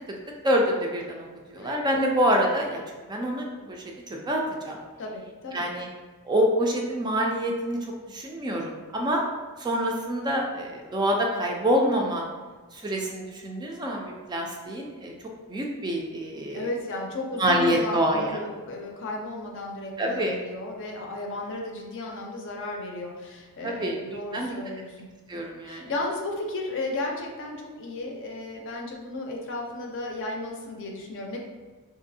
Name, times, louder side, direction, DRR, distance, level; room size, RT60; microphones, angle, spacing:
voice 1, 0.4-2.8 3.1-4.8 5.5-5.9 6.2-9.2 9.6-12.2 12.7-15.1 15.5-16.7 17.4-18.4 20.0-20.4 23.6-24.5 25.3-25.9, equal, 20° right, 0 dB, 0.3 m, -26 dB
voice 2, 1.6-2.1 5.0-5.7 16.5-25.1 25.7-31.4, left 2 dB, 55° left, 1 dB, 0.5 m, -34 dB
3.9 x 2.5 x 2.6 m, 1.4 s
head